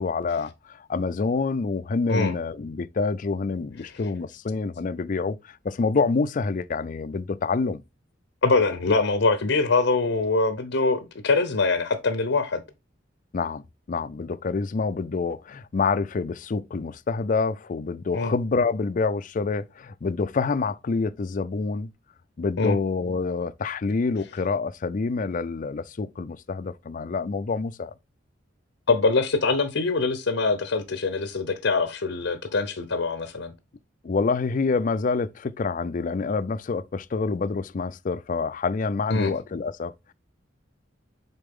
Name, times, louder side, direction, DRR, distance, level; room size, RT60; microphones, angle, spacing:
voice 1, 0.0-7.8 13.3-21.9 22.4-27.9 34.0-40.1, left 4 dB, 45° left, 0.4 m, -27 dB
voice 2, 8.4-12.6 18.1-18.3 22.6-22.8 28.9-33.5 39.1-39.3, left 3 dB, 75° left, 0.7 m, -23 dB
6.8 x 4.1 x 3.6 m
head